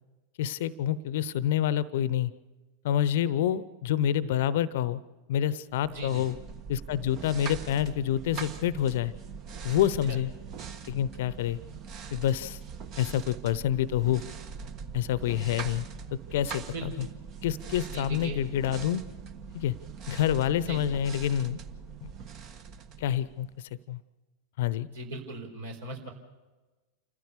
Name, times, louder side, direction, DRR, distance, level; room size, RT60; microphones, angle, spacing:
voice 1, 0.4-2.3 2.8-5.0 5.3-6.4 6.7-9.1 9.6-10.3 10.9-11.6 12.1-12.6 13.0-14.2 14.9-15.9 16.3-17.1 17.4-19.0 19.5-19.7 20.1-21.6 22.0-22.1 23.0-23.5 23.9-24.0 24.6-24.9, left 11 dB, 55° left, 18 dB, 0.9 m, -27 dB
sound 1, 5.8-23.6, right 6 dB, 35° right, 1.5 m, -42 dB
voice 2, 5.9-6.2 10.1-10.2 16.7-17.1 17.9-18.4 20.6-20.8 24.9-26.1, right 2 dB, 60° right, 3 dB, 4.7 m, -38 dB
28.0 x 15.0 x 6.8 m, 1.2 s
figure-of-eight pair, 90°, 0 cm